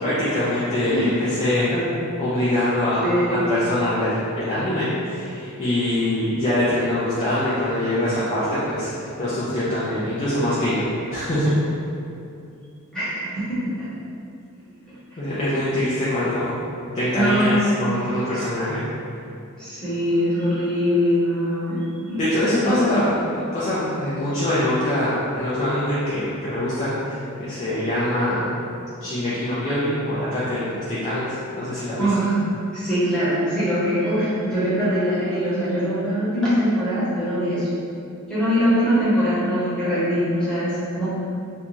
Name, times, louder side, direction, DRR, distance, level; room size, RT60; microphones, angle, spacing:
voice 1, 0.0-1.7 2.2-11.6 15.2-16.6 16.9-18.9 22.2-23.2 23.5-28.5 29.0-32.1, left 1 dB, 30° left, -11 dB, 0.4 m, -23 dB
voice 2, 3.0-3.5 12.9-13.9 14.9-15.0 17.1-17.9 19.6-22.2 22.6-22.8 32.0-32.4 32.7-37.7 38.3-41.1, equal, 5° left, -13 dB, 0.9 m, -22 dB
2.5 x 2.3 x 3.0 m, 2.5 s
head